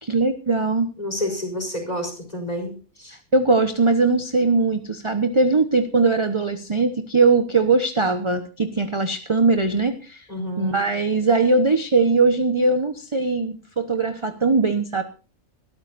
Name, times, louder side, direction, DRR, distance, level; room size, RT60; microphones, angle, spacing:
voice 1, 0.0-0.9 3.3-10.2 10.6-15.0, right 3 dB, 25° right, 8 dB, 0.9 m, -20 dB
voice 2, 1.0-3.2 10.3-10.8, left 1 dB, 25° left, 3 dB, 4.5 m, -29 dB
22.0 x 13.0 x 2.6 m, 0.35 s
omnidirectional pair, 1.5 m